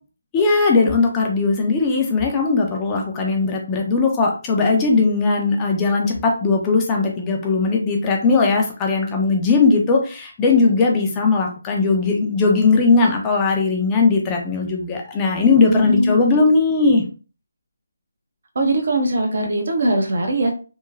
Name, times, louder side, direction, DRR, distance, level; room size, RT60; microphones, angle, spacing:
voice 1, 0.3-17.0, left 4 dB, 15° left, 1 dB, 0.5 m, -18 dB
voice 2, 15.7-16.5 18.5-20.5, right 1 dB, 55° right, 4 dB, 0.7 m, -21 dB
2.9 x 2.2 x 2.4 m, 0.36 s
figure-of-eight pair, 155°, 0 cm